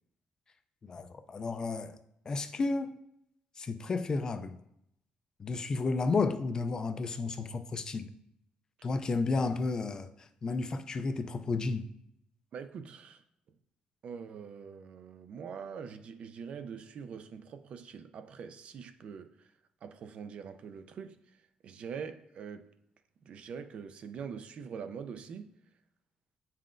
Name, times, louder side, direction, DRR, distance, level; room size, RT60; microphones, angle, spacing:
voice 1, 0.8-2.0 2.3-2.9 3.6-4.6 5.4-8.1 8.8-11.9, left 3 dB, 30° left, 0.3 m, -32 dB
voice 2, 12.5-13.2 14.0-19.5 19.8-21.2 21.6-22.7 23.2-25.5, right 6 dB, 50° right, 0.4 m, -43 dB
8.8 x 5.6 x 2.5 m
cardioid pair, 160°, 3 cm